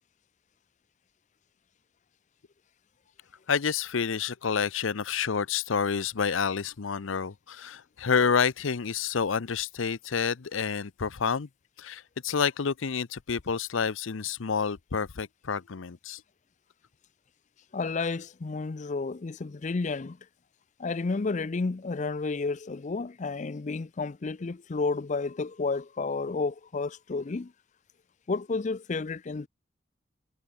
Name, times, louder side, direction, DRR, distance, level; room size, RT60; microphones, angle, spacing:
voice 1, 3.5-11.5 11.8-16.2, left 6 dB, 80° left, 0.7 m, -29 dB
voice 2, 17.7-20.2 20.8-27.5 28.3-29.5, left 3 dB, 35° left, 0.5 m, -31 dB
head